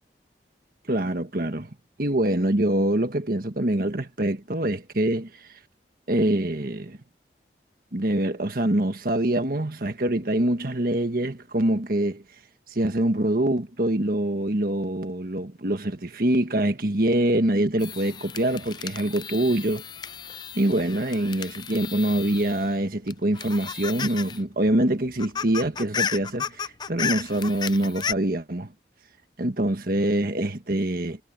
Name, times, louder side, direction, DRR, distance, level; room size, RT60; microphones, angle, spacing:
voice 1, 0.9-1.7 2.0-5.6 6.1-7.0 7.9-12.2 12.7-19.8 20.5-28.7 29.4-31.2, right 1 dB, 55° right, 1.5 m, -25 dB
sound 1, 17.8-22.7 23.1-24.4 24.7-24.8 25.1-28.1, left 7 dB, 25° left, 0.3 m, -33 dB
head